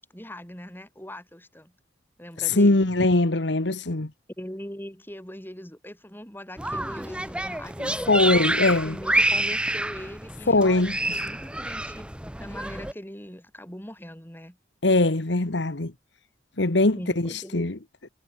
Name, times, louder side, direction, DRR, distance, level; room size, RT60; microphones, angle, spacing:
voice 1, 0.1-1.7 2.2-2.9 4.4-8.2 8.8-12.1 12.4-14.6 17.0-17.7, equal, 10° left, 7.4 m, -41 dB
voice 2, 2.4-4.1 7.8-9.0 10.5-11.2 14.8-15.9 16.6-17.8, left 2 dB, 70° left, 1.5 m, -22 dB
sound 1, 6.6-12.9, right 1 dB, 5° right, 1.9 m, -28 dB
head